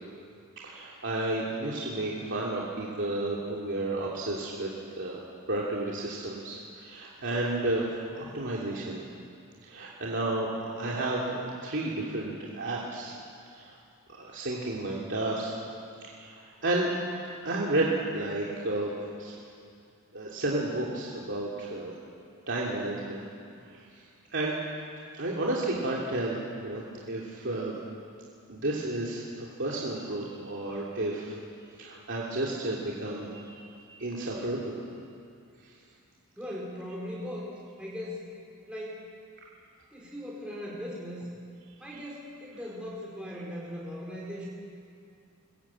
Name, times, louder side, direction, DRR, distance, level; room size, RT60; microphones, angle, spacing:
voice 1, 0.6-4.7 5.0-5.2 5.5-9.0 9.6-10.5 10.8-13.1 13.5-13.7 14.2-15.5 16.2-16.9 17.4-18.9 19.2-19.3 20.1-21.9 22.5-23.3 24.3-24.5 25.1-26.4 26.6-26.8 27.1-27.8 28.5-31.4 31.7-34.8, right 2 dB, 55° right, -4 dB, 2.8 m, -32 dB
voice 2, 36.4-37.5 37.8-38.2 38.7-39.1 39.9-41.3 41.8-44.4, equal, 5° right, -5 dB, 3.8 m, -39 dB
24.0 x 20.5 x 8.8 m, 2.5 s
head